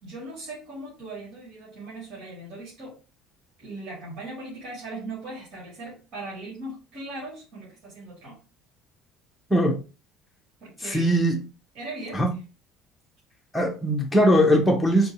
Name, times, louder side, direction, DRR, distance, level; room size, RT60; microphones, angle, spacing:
voice 1, 0.0-3.0 3.6-8.4 10.6-11.1 11.7-12.4, right 2 dB, 60° right, 2.3 m, -39 dB
voice 2, 10.9-11.4 12.1-12.3 13.5-15.1, equal, 5° left, 0.8 m, -20 dB
4.4 x 2.6 x 2.9 m
cardioid pair, 170°, 0 cm